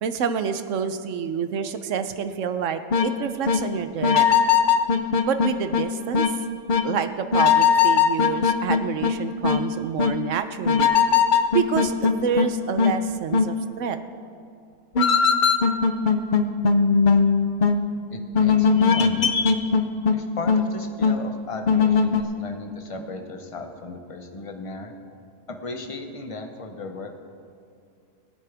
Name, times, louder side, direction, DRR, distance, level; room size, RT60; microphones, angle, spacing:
voice 1, 0.0-4.3 5.3-6.3 6.8-10.9 11.5-14.0, right 7 dB, 65° right, 10 dB, 0.9 m, -28 dB
sound 1, 2.9-3.1 3.5-3.6 4.0-5.8 6.1-6.3 6.7-6.8 7.3-9.1 9.4-9.6 10.0-10.1 10.7-12.5 12.8-12.9 13.3-13.5 15.0-17.9 18.3-20.2 20.5-20.7 21.0-21.2 21.7-22.2, left 6 dB, 60° left, 0.5 m, -19 dB
voice 2, 18.1-19.4 20.1-24.9 25.5-27.1, left 3 dB, 30° left, 5 dB, 0.7 m, -36 dB
20.5 x 9.5 x 3.4 m, 2.4 s
omnidirectional pair, 1.7 m